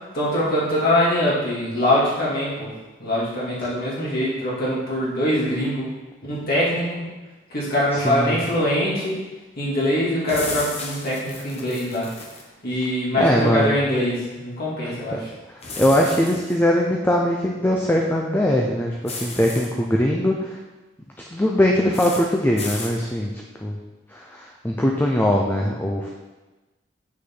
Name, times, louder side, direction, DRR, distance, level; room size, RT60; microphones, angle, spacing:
voice 1, 0.1-2.7 3.0-5.9 6.2-7.1 7.5-9.1 9.6-12.1 12.6-15.3, left 1 dB, 55° left, -7 dB, 2.8 m, -23 dB
voice 2, 7.9-8.4 13.2-13.8 15.1-15.2 15.8-20.6 21.3-23.8 24.1-26.1, left 1 dB, 10° left, 0 dB, 0.6 m, -21 dB
sound 1, 10.3-12.4 15.6-16.5 19.1-19.7 21.9-22.3 22.6-23.0, left 2 dB, 35° left, 1.2 m, -34 dB
7.6 x 6.7 x 3.9 m, 1.2 s
head